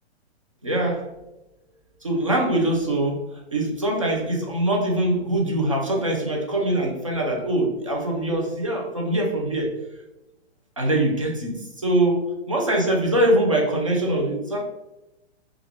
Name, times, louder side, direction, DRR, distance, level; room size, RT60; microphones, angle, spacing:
voice 1, 0.6-1.1 2.0-3.2 3.5-9.8 10.8-14.6, right 1 dB, 30° right, -1 dB, 0.4 m, -23 dB
3.4 x 2.3 x 3.3 m, 0.97 s
hypercardioid pair, 180°, 34 cm